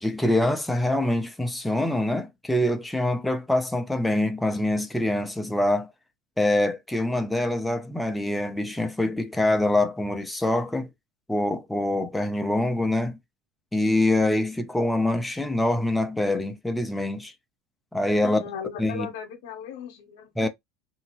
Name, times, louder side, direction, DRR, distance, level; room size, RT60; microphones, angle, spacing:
voice 1, 0.0-5.9 6.4-10.9 11.3-13.2 13.7-17.3 17.9-18.4 18.8-19.1 20.4-20.5, left 1 dB, 5° left, 0.5 m, -25 dB
voice 2, 18.2-20.5, left 7 dB, 80° left, 0.8 m, -37 dB
2.9 x 2.7 x 2.9 m
supercardioid pair, 120°, 0 cm